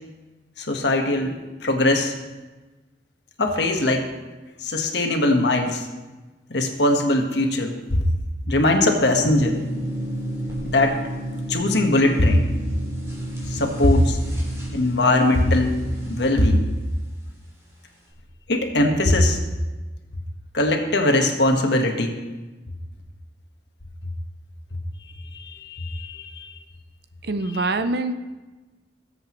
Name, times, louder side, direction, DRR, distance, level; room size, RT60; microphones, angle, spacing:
voice 1, 0.6-1.4 1.6-2.1 3.4-4.1 4.6-5.8 6.5-8.0 8.5-9.6 10.7-11.0 11.5-12.5 13.5-14.2 14.7-15.7 16.1-16.6 18.5-19.4 20.5-22.2 25.3-26.5, left 1 dB, 75° left, 3 dB, 1.4 m, -20 dB
sound 1, 9.1-16.3, right 1 dB, 15° right, 3.1 m, -31 dB
voice 2, 27.2-28.2, right 2 dB, 65° right, 10 dB, 0.6 m, -24 dB
19.5 x 7.9 x 3.1 m, 1.2 s
head